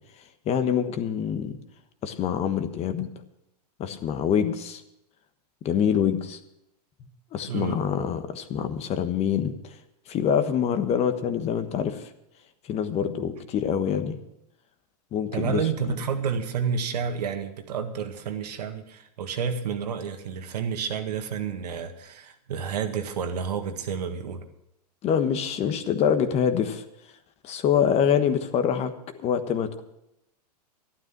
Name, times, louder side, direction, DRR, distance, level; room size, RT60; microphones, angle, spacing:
voice 1, 0.4-1.6 2.0-3.1 3.8-4.8 5.6-6.4 7.3-9.7 10.1-12.1 12.6-14.2 15.1-15.6 25.0-26.8 27.4-28.9 29.2-29.8, left 8 dB, 30° left, 10 dB, 1.2 m, -25 dB
voice 2, 7.5-7.8 15.3-24.4, right 6 dB, 80° right, 6 dB, 1.8 m, -30 dB
12.5 x 12.0 x 6.0 m, 0.82 s
hypercardioid pair, 125°, 21 cm